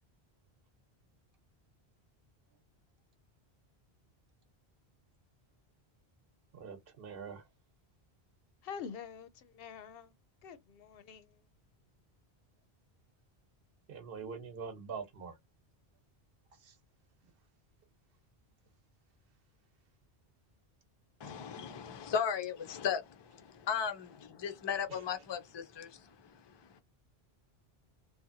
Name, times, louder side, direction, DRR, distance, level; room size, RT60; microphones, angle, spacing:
voice 1, 6.5-7.4 13.9-15.4 16.6-16.8 24.9-25.0, right 5 dB, 60° right, 1.0 m, -44 dB
voice 2, 8.6-10.1 10.4-11.4, left 7 dB, 70° left, 0.7 m, -46 dB
voice 3, 21.2-26.1 26.5-26.8, left 7 dB, 40° left, 0.4 m, -36 dB
2.8 x 2.2 x 2.6 m
omnidirectional pair, 1.1 m